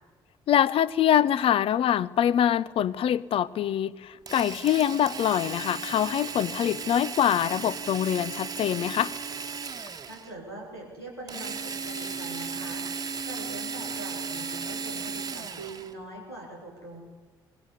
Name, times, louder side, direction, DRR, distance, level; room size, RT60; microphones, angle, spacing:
voice 1, 0.5-9.1, left 10 dB, 50° left, 0.7 m, -24 dB
Drill, 4.3-10.3 11.3-15.9, right 5 dB, 30° right, 1.3 m, -36 dB
voice 2, 10.1-12.9 13.2-17.0, right 1 dB, 90° left, 3.5 m, -42 dB
22.0 x 18.5 x 9.8 m
figure-of-eight pair, 45°, 12 cm